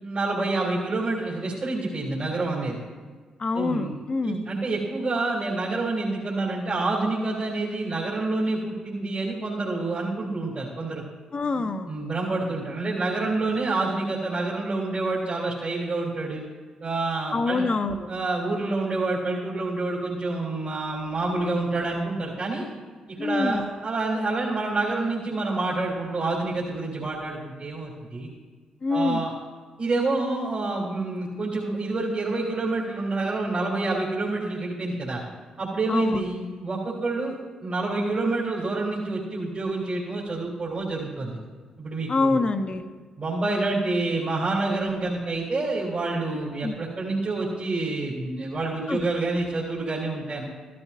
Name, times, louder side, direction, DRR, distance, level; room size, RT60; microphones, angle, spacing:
voice 1, 0.0-2.8 3.5-3.9 4.2-11.0 11.6-16.4 16.8-17.7 18.1-22.6 23.2-28.3 28.9-29.3 29.8-35.2 35.6-37.3 37.6-41.3 41.8-42.4 43.2-50.4, right 2 dB, 50° right, -6 dB, 2.9 m, -28 dB
voice 2, 3.4-4.5 11.3-11.9 17.3-18.1 23.2-23.6 28.8-29.2 35.9-36.2 42.1-42.9 46.6-46.8 48.9-49.0, left 3 dB, 40° left, 9 dB, 0.8 m, -25 dB
14.0 x 12.0 x 2.7 m, 1.5 s
hypercardioid pair, 45°, 3 cm